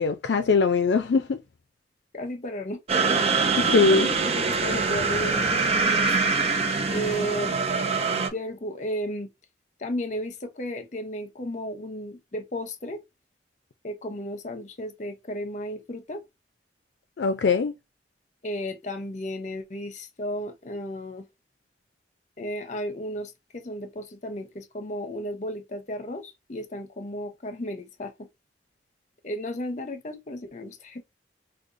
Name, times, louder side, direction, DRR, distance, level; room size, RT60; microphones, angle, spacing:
voice 1, 0.0-1.4 3.6-4.1 17.2-17.7, left 4 dB, 70° left, 0.4 m, -21 dB
voice 2, 2.1-2.8 3.7-6.1 6.9-7.6 8.1-9.3 9.8-13.0 13.8-16.2 18.4-21.3 22.4-28.3 29.2-31.0, equal, 45° left, 0.8 m, -34 dB
sound 1, 2.9-8.3, right 4 dB, 35° right, 0.6 m, -24 dB
5.0 x 2.3 x 2.5 m
head